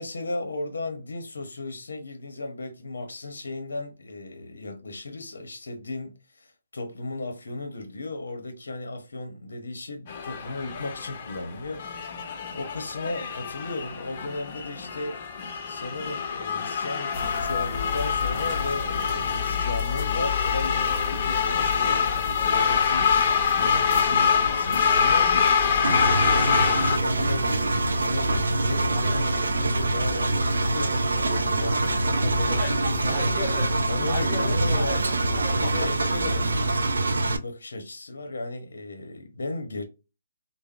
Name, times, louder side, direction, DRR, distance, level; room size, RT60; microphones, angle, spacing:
voice 1, 0.0-15.2 15.7-25.4 25.9-39.8, left 2 dB, 80° left, 0.7 m, -36 dB
sound 1, 10.1-27.0, left 6 dB, 40° left, 0.5 m, -25 dB
sound 2, 17.1-36.8, left 4 dB, 15° left, 1.5 m, -34 dB
Engine, 25.8-37.4, right 2 dB, 85° right, 0.4 m, -25 dB
3.3 x 2.0 x 2.3 m
hypercardioid pair, 155°, 0 cm